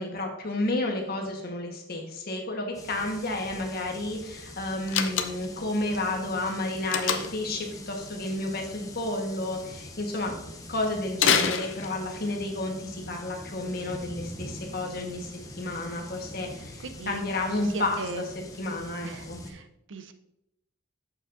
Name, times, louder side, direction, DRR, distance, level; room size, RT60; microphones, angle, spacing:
voice 1, 0.0-10.3 10.7-18.0 18.6-19.4, left 2 dB, 50° left, 1 dB, 1.3 m, -31 dB
sound 1, 2.7-19.5, left 1 dB, 15° left, 0.7 m, -44 dB
Slam, 4.9-5.6 6.9-7.5 11.1-12.2, left 7 dB, 70° left, 0.6 m, -26 dB
voice 2, 16.5-17.2 17.5-18.2 19.0-20.1, right 4 dB, 65° right, 9 dB, 0.6 m, -39 dB
7.5 x 6.8 x 2.6 m, 0.84 s
head